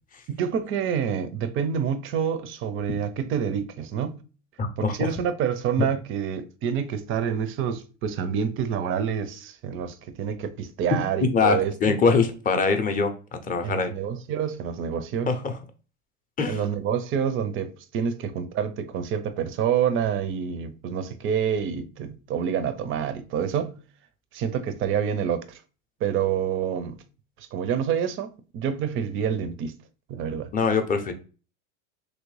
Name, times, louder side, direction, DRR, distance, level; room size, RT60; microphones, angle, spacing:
voice 1, 0.3-4.2 4.8-12.0 13.6-15.3 16.5-23.8 24.3-25.6 26.0-27.0 27.5-29.7 30.1-30.5, right 8 dB, 35° right, 0.4 m, -27 dB
voice 2, 4.6-5.1 11.2-13.9 15.3-15.5 16.4-16.6 30.5-31.1, left 4 dB, 20° left, 0.5 m, -23 dB
3.1 x 2.6 x 3.1 m
supercardioid pair, 110°, 38 cm